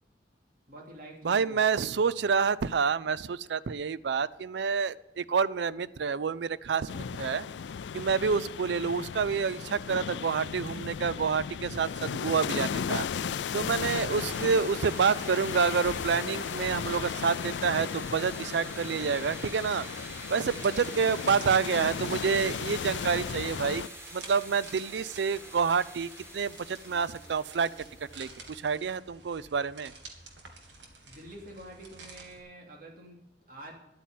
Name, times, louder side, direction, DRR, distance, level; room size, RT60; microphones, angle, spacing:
voice 1, 0.7-2.3 8.6-9.0 14.1-14.4 31.0-33.2 33.5-33.7, right 1 dB, 55° right, 0 dB, 2.8 m, -48 dB
voice 2, 1.2-7.5 7.9-13.1 13.5-19.9 20.3-23.8 24.1-27.9 28.2-29.9, right 5 dB, 70° right, 18 dB, 0.4 m, -28 dB
sound 1, 6.9-23.9, left 7 dB, 80° left, 0.4 m, -35 dB
sound 2, 14.1-28.9, equal, 15° right, 1.9 m, -46 dB
sound 3, 19.4-32.4, right 3 dB, 90° right, 2.0 m, -51 dB
11.0 x 8.5 x 7.4 m, 0.90 s
head